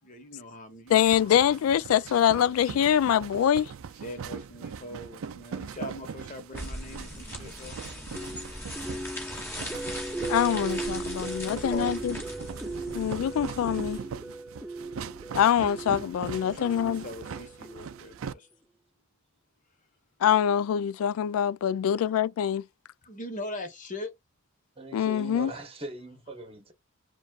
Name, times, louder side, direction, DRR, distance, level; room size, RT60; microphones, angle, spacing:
voice 1, 0.0-1.4 4.0-7.8 11.4-12.1 15.1-15.4 16.4-18.5 22.0-22.1 23.0-24.1 26.4-26.5, left 1 dB, 40° left, 1.2 m, -41 dB
voice 2, 0.9-3.7 10.3-12.2 12.9-14.0 15.3-17.0 20.2-22.6 24.9-25.5, left 9 dB, 90° left, 0.3 m, -24 dB
sound 1, 0.9-18.3, right 6 dB, 75° right, 0.4 m, -41 dB
sound 2, 6.6-14.0, left 1 dB, 10° left, 2.0 m, -40 dB
sound 3, 8.2-18.2, right 2 dB, 5° right, 0.3 m, -38 dB
voice 3, 24.8-26.7, right 2 dB, 30° right, 1.1 m, -40 dB
7.1 x 2.5 x 2.4 m
head